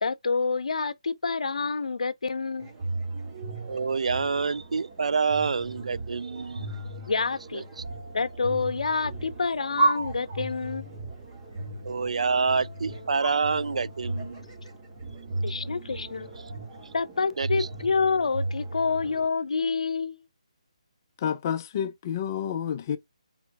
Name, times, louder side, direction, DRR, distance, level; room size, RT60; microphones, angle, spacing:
voice 1, 0.0-2.7 7.1-7.6 8.1-10.9 15.4-16.3 16.9-20.2, left 4 dB, 70° left, 0.7 m, -28 dB
sound 1, 2.6-19.3, right 2 dB, 20° right, 2.0 m, -35 dB
voice 2, 3.7-6.7 7.5-7.6 11.8-14.4 17.4-17.7, right 5 dB, 75° right, 0.3 m, -27 dB
voice 3, 21.2-23.0, left 8 dB, 30° left, 0.6 m, -29 dB
5.0 x 4.2 x 2.4 m
hypercardioid pair, 160°, 4 cm